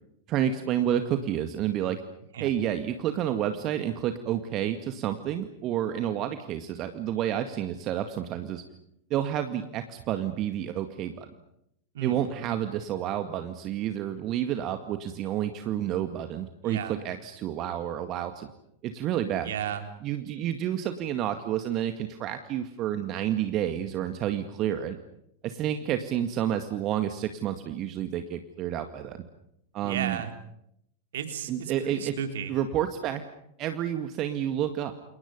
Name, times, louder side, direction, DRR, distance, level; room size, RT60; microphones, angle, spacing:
voice 1, 0.3-2.0 2.4-8.6 9.1-11.3 12.0-18.5 18.8-19.5 20.0-25.0 25.4-29.2 29.7-30.2 31.5-32.1 32.5-33.2 33.6-34.9, right 10 dB, 35° right, 8 dB, 2.0 m, -30 dB
voice 2, 16.6-17.0 19.5-19.8 29.8-30.3 31.1-32.5, right 8 dB, 60° right, 6 dB, 3.7 m, -34 dB
29.5 x 28.5 x 5.5 m, 0.76 s
figure-of-eight pair, 90°, 0 cm